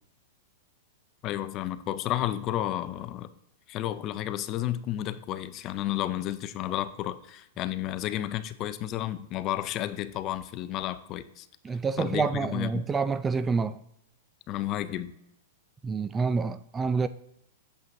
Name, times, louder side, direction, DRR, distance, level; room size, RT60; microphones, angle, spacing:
voice 1, 1.2-3.3 3.7-11.5 12.0-12.9 14.5-15.1, left 13 dB, 40° left, 0.5 m, -32 dB
voice 2, 11.6-13.8 15.8-17.1, right 4 dB, 15° right, 0.3 m, -27 dB
8.3 x 7.5 x 2.6 m
hypercardioid pair, 125°, 0 cm